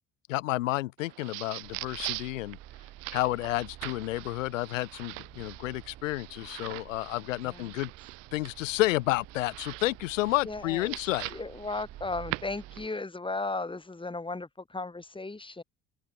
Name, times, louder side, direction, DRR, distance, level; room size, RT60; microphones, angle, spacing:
voice 1, 0.3-2.6 3.1-7.9 8.3-11.3, left 18 dB, 90° left, 1.2 m, -30 dB
sound 1, 1.0-13.0, right 28 dB, 80° right, 2.0 m, -43 dB
sound 2, 1.6-12.9, right 13 dB, 60° right, 4.0 m, -51 dB
voice 2, 10.4-11.0 11.3-15.6, left 3 dB, 15° left, 2.7 m, -35 dB
hypercardioid pair, 65°, 37 cm